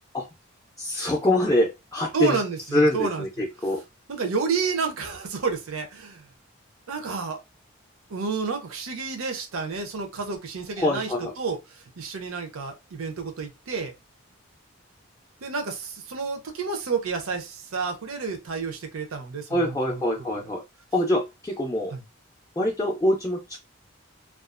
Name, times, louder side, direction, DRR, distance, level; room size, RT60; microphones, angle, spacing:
voice 1, 0.8-2.4 2.7-3.8 10.8-11.3 19.5-20.6 20.9-21.9 22.6-23.6, left 1 dB, 15° left, 0.4 m, -24 dB
voice 2, 2.1-3.2 4.1-6.2 6.9-7.4 8.1-11.1 11.4-11.6 12.0-13.9 15.4-20.0 21.9-22.0, right 5 dB, 85° right, 0.6 m, -30 dB
2.4 x 2.3 x 2.4 m
head